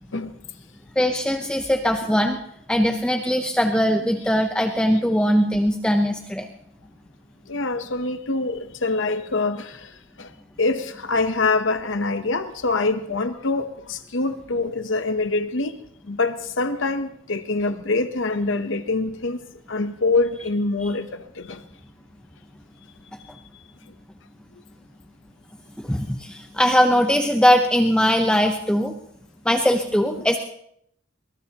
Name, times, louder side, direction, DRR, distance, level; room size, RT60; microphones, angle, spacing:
voice 1, 1.0-2.4 2.7-6.5 20.8-21.0 25.8-28.9 29.4-30.4, equal, 5° left, 4 dB, 0.7 m, -20 dB
voice 2, 7.5-9.7 10.6-15.7 16.1-19.4 19.7-21.1 21.5-21.6, left 3 dB, 65° left, 9 dB, 0.9 m, -24 dB
22.5 x 21.5 x 2.9 m, 0.70 s
head